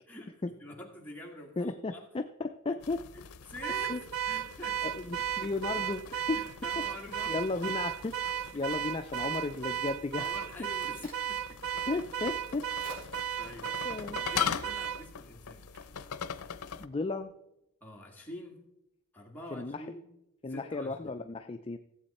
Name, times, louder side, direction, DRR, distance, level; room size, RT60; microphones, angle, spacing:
voice 1, 0.1-2.0 2.7-2.8 3.1-4.9 5.4-5.5 6.3-7.8 10.2-11.4 13.4-13.8 14.3-15.7 17.8-18.6 19.1-20.1 20.5-21.1, left 1 dB, 10° left, -1 dB, 1.9 m, -46 dB
voice 2, 1.6-3.1 3.9-4.0 4.8-6.4 6.8-10.3 10.6-10.7 11.9-12.7 13.0-13.1 13.8-14.3 16.8-17.3 19.5-19.9 20.4-21.8, left 3 dB, 25° left, 7 dB, 0.4 m, -35 dB
sound 1, 2.8-16.9, left 7 dB, 85° left, 0.6 m, -41 dB
Car / Alarm, 3.6-15.0, right 9 dB, 65° right, 0.4 m, -35 dB
Crack, 10.3-17.2, equal, 45° right, 4.3 m, -57 dB
15.5 x 7.8 x 4.2 m, 0.85 s
head